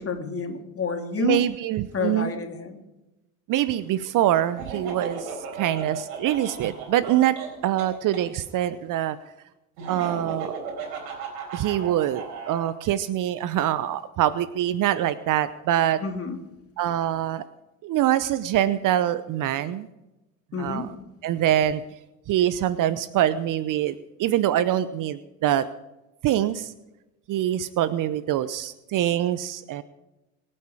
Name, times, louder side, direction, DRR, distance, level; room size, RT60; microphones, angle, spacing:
voice 1, 0.0-1.4 1.9-2.8 16.0-16.4 20.5-20.9, left 5 dB, 30° left, 5 dB, 2.7 m, -29 dB
voice 2, 1.2-2.3 3.5-7.4 7.6-9.2 9.9-10.5 11.5-16.0 16.8-17.4 17.8-19.9 20.6-20.9 21.2-21.8 22.3-25.7 26.2-26.7 27.3-29.8, right 12 dB, 45° right, 16 dB, 0.8 m, -24 dB
Laughter, 4.6-8.2 9.8-12.7, right 5 dB, 70° right, 4.5 m, -36 dB
25.0 x 8.8 x 4.9 m, 0.97 s
hypercardioid pair, 70°, 46 cm